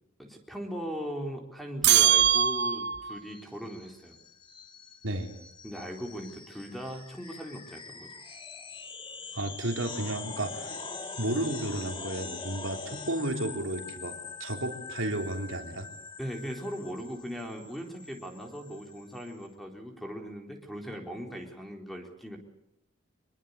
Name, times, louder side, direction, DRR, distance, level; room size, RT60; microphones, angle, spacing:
voice 1, 0.2-4.2 5.6-8.1 16.2-22.4, equal, ahead, 2 dB, 4.0 m, -39 dB
Lift Bell, 1.8-3.2, right 10 dB, 55° right, 0.9 m, -22 dB
sound 1, 3.2-19.5, left 4 dB, 25° left, 2.7 m, -44 dB
voice 2, 9.3-10.8 11.2-15.9, right 1 dB, 80° right, 3 dB, 3.6 m, -33 dB
24.5 x 23.5 x 8.3 m, 0.79 s
head